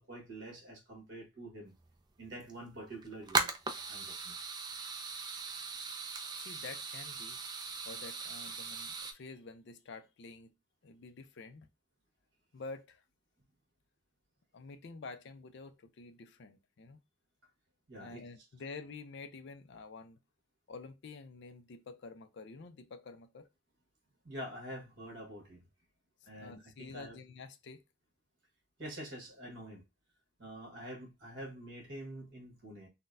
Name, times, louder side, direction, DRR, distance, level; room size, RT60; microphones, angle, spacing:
voice 1, 0.0-1.7 2.2-3.5 3.9-4.3 17.9-18.2 24.2-25.7 26.2-27.2 28.8-29.8 30.4-32.9, right 1 dB, 60° right, 1.5 m, -46 dB
sound 1, 1.9-2.0 2.3-2.5 2.9-9.1, right 4 dB, 20° right, 0.4 m, -38 dB
voice 2, 6.3-7.4 7.9-10.5 10.8-11.7 12.5-13.0 14.5-17.0 18.0-20.2 20.7-23.5 26.4-27.8, left 4 dB, 55° left, 0.4 m, -49 dB
3.9 x 2.2 x 2.5 m
head